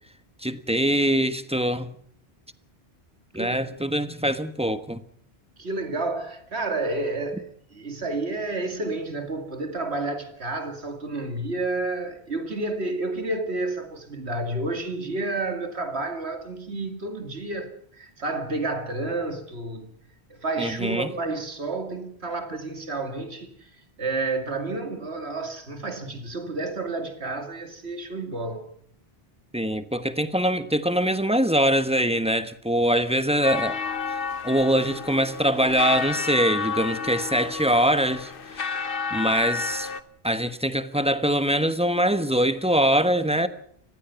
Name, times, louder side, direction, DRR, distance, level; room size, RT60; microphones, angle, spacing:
voice 1, 0.4-1.9 3.3-5.0 20.6-21.1 29.5-33.8 34.4-38.7 39.1-39.9 40.2-43.5, equal, 5° right, 1.2 m, -23 dB
voice 2, 3.3-3.7 5.6-19.9 20.3-23.7 24.0-28.6, right 2 dB, 85° right, 2.7 m, -30 dB
sound 1, 33.4-40.0, left 5 dB, 60° left, 1.2 m, -31 dB
29.5 x 15.5 x 5.9 m
omnidirectional pair, 1.1 m